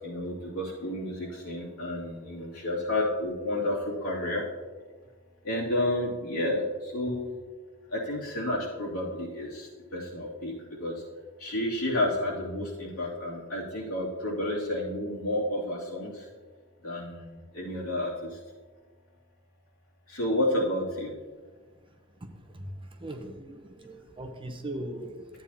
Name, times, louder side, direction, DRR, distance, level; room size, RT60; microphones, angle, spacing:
voice 1, 0.0-4.5 5.4-7.2 7.9-10.5 10.8-10.9 11.4-16.3 16.8-18.4 20.1-21.2, left 1 dB, 80° left, -5 dB, 2.6 m, -31 dB
voice 2, 23.0-25.4, right 1 dB, 25° right, 4 dB, 0.7 m, -39 dB
12.5 x 8.7 x 2.8 m, 1.4 s
head